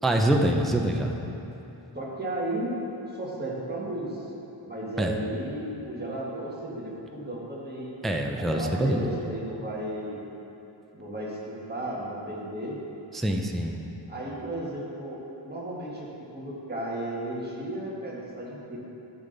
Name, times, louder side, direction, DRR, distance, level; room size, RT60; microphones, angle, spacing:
voice 1, 0.0-1.2 5.0-5.2 8.0-9.1 13.1-13.8, right 1 dB, ahead, 2 dB, 0.4 m, -25 dB
voice 2, 1.9-2.7 3.1-4.2 4.6-7.9 8.4-10.3 10.9-12.8 14.1-18.8, right 1 dB, 20° right, -5 dB, 1.6 m, -34 dB
11.5 x 6.9 x 3.9 m, 3.0 s
wide cardioid pair, 180°, 48 cm